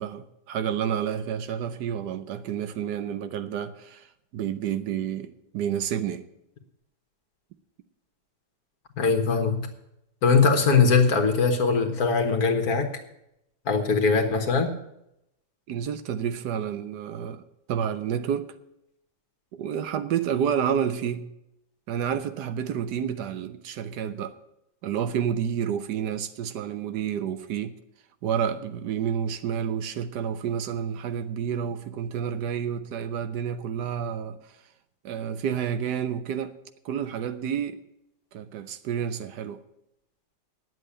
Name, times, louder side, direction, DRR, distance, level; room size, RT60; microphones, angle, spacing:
voice 1, 0.0-4.1 4.3-6.3 15.7-17.4 17.7-18.5 19.5-21.2 21.9-24.4 24.8-27.7 28.2-34.4 35.0-36.5 36.8-37.8 38.3-39.6, right 8 dB, 75° right, 1.3 m, -29 dB
voice 2, 9.0-9.7 10.2-12.9 13.6-14.7, left 5 dB, 60° left, 1.8 m, -21 dB
9.9 x 7.8 x 8.5 m
omnidirectional pair, 1.8 m